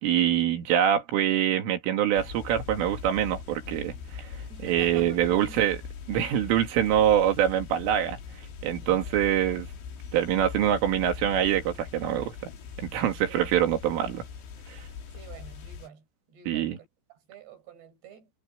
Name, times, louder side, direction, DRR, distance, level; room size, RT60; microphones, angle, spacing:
voice 1, 0.0-5.8 6.1-8.2 8.6-9.7 10.1-12.5 12.8-14.3 14.7-14.9 16.5-16.8, right 10 dB, 75° right, 4.7 m, -25 dB
sound 1, 2.2-15.9, left 6 dB, 65° left, 5.5 m, -41 dB
voice 2, 4.5-5.6 6.4-6.5 8.8-9.0 13.2-13.4 15.1-18.3, right 8 dB, 55° right, 6.5 m, -48 dB
omnidirectional pair, 6.0 m